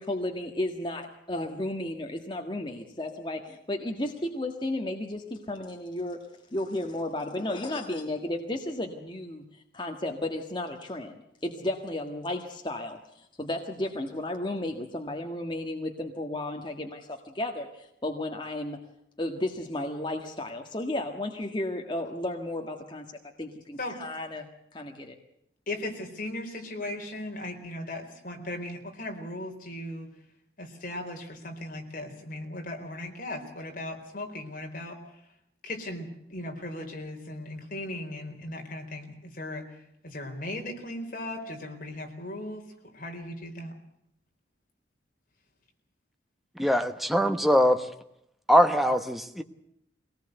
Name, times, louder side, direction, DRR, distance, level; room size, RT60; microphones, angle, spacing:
voice 1, 0.0-6.2 6.5-18.8 19.2-23.0 23.4-25.1, left 1 dB, 25° left, 3 dB, 1.7 m, -33 dB
voice 2, 25.7-30.1 30.6-35.0 35.6-39.7 40.0-42.6 42.9-43.8, left 1 dB, 50° left, 3 dB, 4.3 m, -37 dB
voice 3, 46.6-47.8 48.5-49.4, equal, ahead, 7 dB, 1.2 m, -22 dB
23.5 x 19.0 x 8.0 m, 0.78 s
head